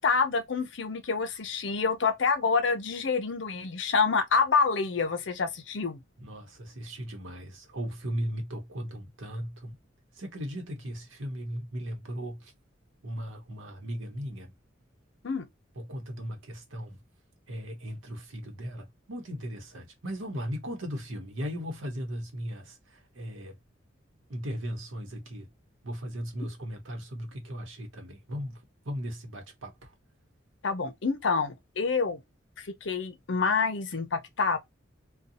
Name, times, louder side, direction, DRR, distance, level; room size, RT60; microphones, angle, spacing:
voice 1, 0.0-6.0 15.2-15.5 30.6-32.2 32.6-34.6, left 5 dB, 65° left, 0.6 m, -27 dB
voice 2, 6.2-9.8 10.1-12.5 13.0-14.5 15.8-17.0 17.5-23.6 24.3-25.5 25.8-29.9, equal, 80° right, 0.9 m, -37 dB
2.7 x 2.3 x 2.6 m
head